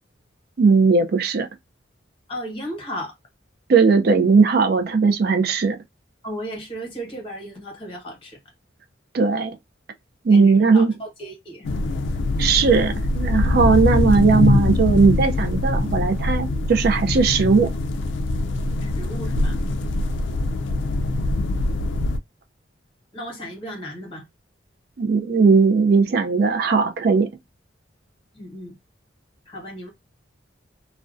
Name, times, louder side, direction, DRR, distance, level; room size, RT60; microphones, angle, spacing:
voice 1, 0.6-1.5 3.7-5.8 9.1-9.5 10.2-10.9 12.4-17.7 25.0-27.3, right 4 dB, 50° right, 0.4 m, -18 dB
voice 2, 2.3-3.2 6.2-8.4 10.3-11.7 18.8-19.6 23.1-24.3 28.3-28.8 29.4-29.9, equal, 30° left, 1.0 m, -35 dB
sound 1, 11.6-22.2, left 2 dB, 65° left, 0.3 m, -23 dB
2.4 x 2.1 x 2.4 m
head